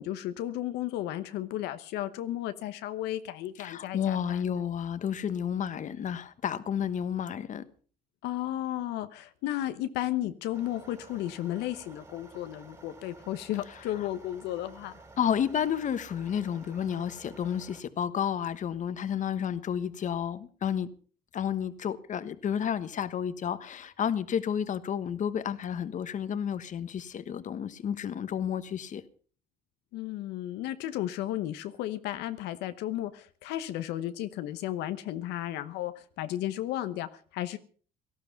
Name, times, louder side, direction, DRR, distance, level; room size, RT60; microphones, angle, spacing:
voice 1, 0.0-4.6 8.2-14.9 29.9-37.6, left 13 dB, 90° left, 1.0 m, -34 dB
voice 2, 3.6-7.6 14.0-14.1 15.2-20.9 21.3-29.0, left 8 dB, 45° left, 1.2 m, -31 dB
sound 1, 10.5-17.8, right 2 dB, 20° right, 3.3 m, -52 dB
18.0 x 12.5 x 5.9 m
cardioid pair, 110°, 17 cm